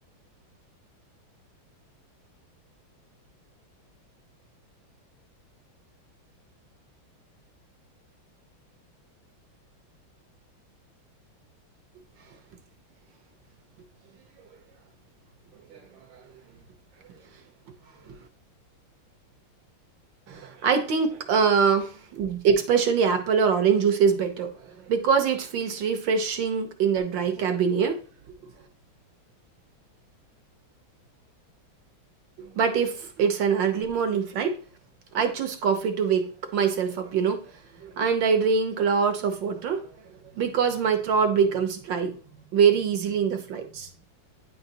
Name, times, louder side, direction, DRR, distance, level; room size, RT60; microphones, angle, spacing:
voice 1, 20.3-28.0 32.4-34.6 35.1-37.5 37.8-39.9 40.3-42.2 42.5-43.9, right 6 dB, 70° right, 7 dB, 1.5 m, -24 dB
9.4 x 4.0 x 2.7 m, 0.39 s
omnidirectional pair, 2.2 m